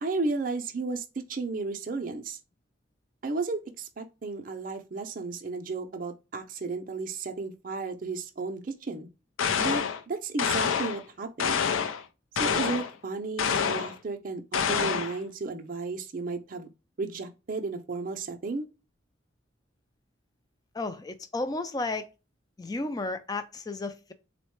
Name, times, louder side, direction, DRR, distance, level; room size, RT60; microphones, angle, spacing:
voice 1, 0.0-2.4 3.2-9.1 9.6-11.6 12.4-16.7 17.0-18.7, right 3 dB, 45° right, 0.5 m, -33 dB
sound 1, 9.4-10.0 10.4-11.0 11.4-12.0 12.4-12.9 13.4-14.0 14.5-15.2, left 7 dB, 85° left, 0.5 m, -27 dB
voice 2, 20.7-22.1 22.6-24.1, left 2 dB, 20° left, 0.3 m, -33 dB
3.8 x 2.1 x 3.0 m
head